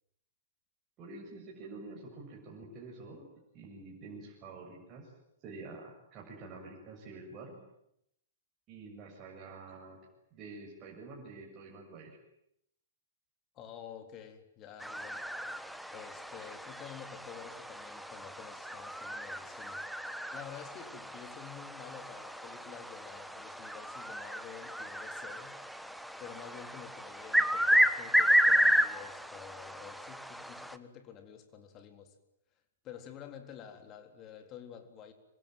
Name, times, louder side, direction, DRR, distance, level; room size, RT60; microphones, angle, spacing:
voice 1, 1.0-3.3 3.5-5.1 5.4-7.6 8.7-10.0 10.3-12.2, right 3 dB, 30° right, 7.4 m, -48 dB
voice 2, 13.5-15.3 15.9-19.9 20.3-25.6 26.2-32.2 32.8-35.1, left 8 dB, 30° left, 3.7 m, -49 dB
sound 1, 14.8-30.8, equal, ahead, 1.5 m, -32 dB
26.0 x 24.0 x 9.3 m
figure-of-eight pair, 110°, 0 cm